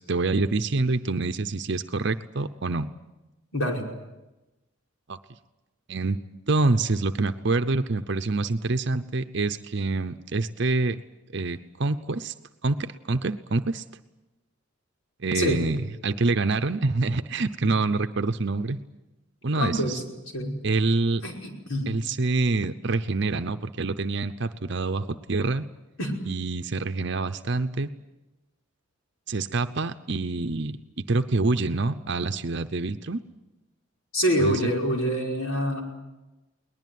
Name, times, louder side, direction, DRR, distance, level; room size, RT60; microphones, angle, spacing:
voice 1, 0.0-2.9 5.1-5.2 5.9-6.2 6.5-11.0 11.3-12.3 12.6-13.8 15.2-18.8 19.4-20.0 20.6-21.2 21.9-25.6 26.3-27.9 29.3-30.8 31.1-33.2 34.4-34.6, right 3 dB, 55° right, 10 dB, 0.7 m, -26 dB
voice 2, 3.5-3.9 15.3-15.6 17.6-17.7 19.5-20.0 20.3-20.6 21.2-21.9 26.0-26.1 34.1-35.8, equal, 80° left, 1 dB, 5.4 m, -26 dB
22.0 x 20.0 x 9.4 m, 1.0 s
head